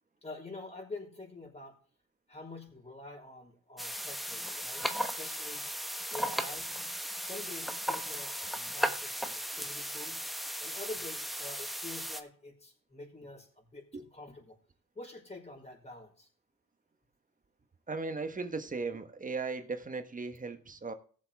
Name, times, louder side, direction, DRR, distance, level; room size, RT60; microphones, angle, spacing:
voice 1, 0.2-1.7 2.3-5.6 6.1-6.8 7.2-10.2 10.6-14.6 15.0-16.3, left 2 dB, 20° left, 5.3 m, -47 dB
sound 1, 3.8-12.2, equal, ahead, 1.1 m, -36 dB
voice 2, 17.9-20.9, right 4 dB, 25° right, 1.4 m, -37 dB
16.0 x 7.6 x 3.5 m
cardioid pair, 90°, 30 cm